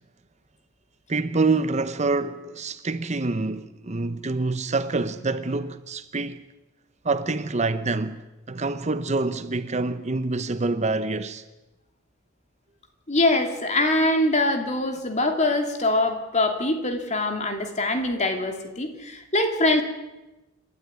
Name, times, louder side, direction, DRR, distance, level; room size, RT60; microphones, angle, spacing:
voice 1, 1.1-6.4 7.0-11.4, right 3 dB, 35° right, 0.8 m, -26 dB
voice 2, 13.1-19.8, left 2 dB, 35° left, 2.9 m, -23 dB
28.0 x 12.5 x 9.8 m
head